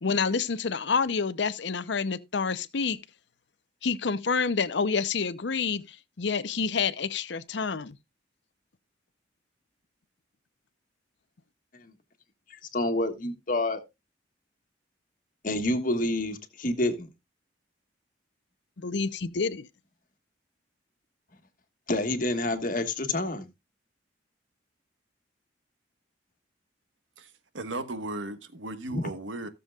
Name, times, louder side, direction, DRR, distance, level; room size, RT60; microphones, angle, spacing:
voice 1, 0.0-3.0 3.8-8.0 18.8-19.7, left 5 dB, 65° left, 0.7 m, -28 dB
voice 2, 12.5-13.8 15.4-17.1 21.9-23.5 28.9-29.1, left 1 dB, 45° left, 1.5 m, -28 dB
voice 3, 27.2-29.5, right 2 dB, 90° right, 1.3 m, -36 dB
17.0 x 7.0 x 2.3 m
head